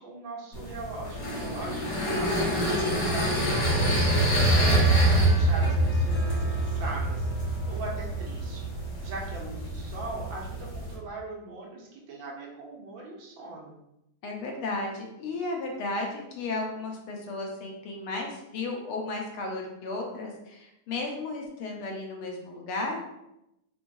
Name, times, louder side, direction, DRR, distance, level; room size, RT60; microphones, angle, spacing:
voice 1, 0.0-2.5 2.9-13.8, right 2 dB, 70° right, -2 dB, 1.6 m, -40 dB
sound 1, 0.5-11.0, right 1 dB, 55° left, 2.1 m, -25 dB
voice 2, 2.4-3.0 14.2-23.0, left 2 dB, 90° left, 1 dB, 1.7 m, -34 dB
4.2 x 3.1 x 2.6 m, 0.86 s
omnidirectional pair, 2.3 m